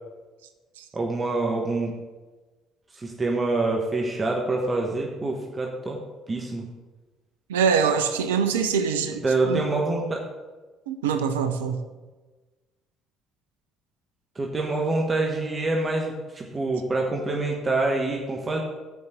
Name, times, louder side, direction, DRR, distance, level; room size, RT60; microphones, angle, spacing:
voice 1, 0.9-1.9 2.9-6.0 6.3-6.7 9.2-10.2 14.3-18.6, right 2 dB, 30° right, 0 dB, 1.3 m, -26 dB
voice 2, 7.5-9.6 10.9-11.8, right 6 dB, 80° right, 8 dB, 0.6 m, -24 dB
8.2 x 5.4 x 7.8 m, 1.3 s
figure-of-eight pair, 55°, 0 cm